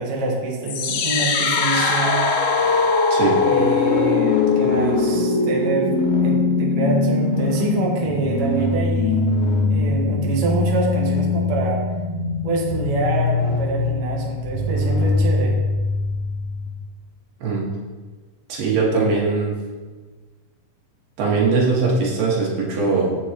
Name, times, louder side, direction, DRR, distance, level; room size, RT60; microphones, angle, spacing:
voice 1, 0.0-2.3 3.4-9.2 9.6-11.8 12.4-15.6, right 3 dB, 50° right, -1 dB, 2.0 m, -25 dB
sound 1, 0.7-16.7, left 3 dB, 85° left, 2.9 m, -21 dB
voice 2, 17.4-17.7 18.5-19.5 21.2-23.1, right 4 dB, 85° right, -3 dB, 3.7 m, -21 dB
14.0 x 6.9 x 3.0 m, 1.4 s
omnidirectional pair, 4.1 m